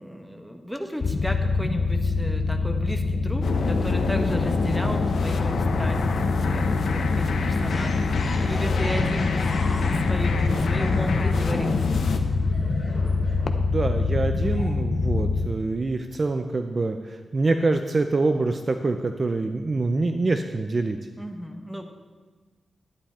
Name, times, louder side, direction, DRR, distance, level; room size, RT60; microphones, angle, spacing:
voice 1, 0.0-8.0 8.5-9.4 10.0-12.0 21.2-21.9, equal, ahead, 4 dB, 0.9 m, -34 dB
sound 1, 1.0-15.5, left 3 dB, 40° left, 0.7 m, -25 dB
sound 2, 3.4-12.2, left 4 dB, 75° left, 0.9 m, -27 dB
sound 3, 7.7-11.0 12.0-13.7 14.3-14.7, left 1 dB, 20° left, 3.7 m, -39 dB
voice 2, 13.5-21.0, right 3 dB, 30° right, 7 dB, 0.5 m, -25 dB
11.5 x 10.0 x 4.3 m, 1.4 s
wide cardioid pair, 165°, 0 cm